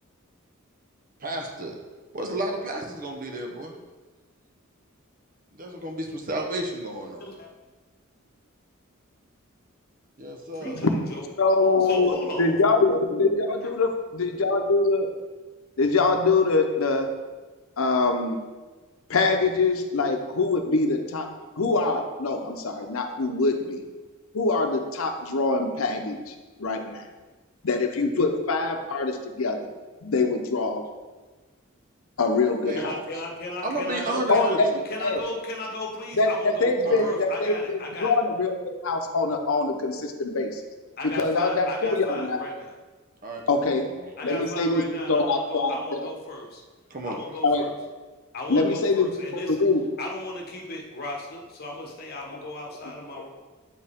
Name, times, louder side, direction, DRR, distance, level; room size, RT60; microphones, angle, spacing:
voice 1, 1.2-1.7 2.1-3.8 5.5-7.2 10.2-10.8 32.7-32.9 33.6-34.6 36.9-37.1 43.2-43.9 46.9-47.2, right 1 dB, 40° right, 2 dB, 0.9 m, -32 dB
voice 2, 7.0-7.5 10.5-11.2 11.8-12.6 32.7-34.5 34.8-38.2 41.0-42.7 44.2-46.6 47.0-47.7 48.3-49.6 50.0-53.3, left 2 dB, 50° left, 0 dB, 1.2 m, -36 dB
voice 3, 11.4-15.1 15.8-17.1 17.8-18.4 19.1-21.3 21.6-23.8 24.3-27.1 27.6-29.7 30.0-30.8 32.2-33.0 34.3-35.2 36.1-40.6 41.0-42.4 43.5-43.9 44.2-46.1 47.4-47.6 48.5-49.8 52.8-53.2, left 3 dB, 80° left, 5 dB, 0.8 m, -24 dB
8.3 x 4.5 x 3.6 m, 1.3 s
head